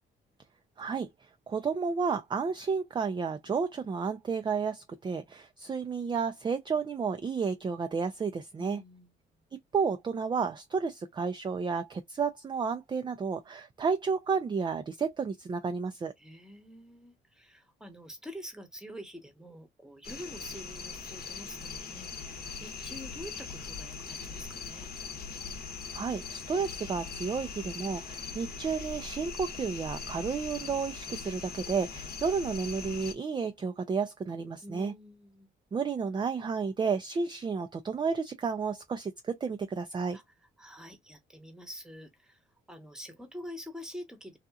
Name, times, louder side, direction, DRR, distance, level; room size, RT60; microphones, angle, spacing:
voice 1, 0.8-1.1 1.5-8.8 9.7-16.1 25.9-34.9 35.7-40.2, right 5 dB, 25° right, 0.4 m, -31 dB
voice 2, 8.6-9.1 16.2-24.9 34.6-35.5 40.1-40.2 40.6-44.4, equal, 5° right, 0.9 m, -46 dB
sound 1, 20.0-33.1, left 5 dB, 50° left, 0.9 m, -41 dB
2.7 x 2.4 x 2.3 m
cardioid pair, 90°, 20 cm